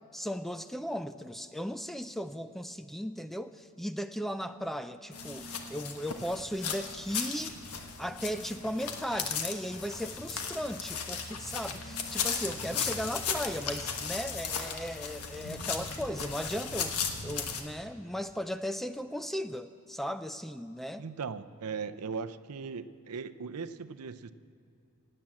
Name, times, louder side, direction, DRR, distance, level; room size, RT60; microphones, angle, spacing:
voice 1, 0.1-7.5 8.0-21.1, equal, ahead, 10 dB, 0.3 m, -36 dB
sound 1, 5.1-17.6, left 6 dB, 85° left, 1.3 m, -36 dB
voice 2, 21.0-24.3, right 5 dB, 80° right, 12 dB, 0.6 m, -38 dB
17.0 x 8.8 x 7.6 m, 2.7 s
head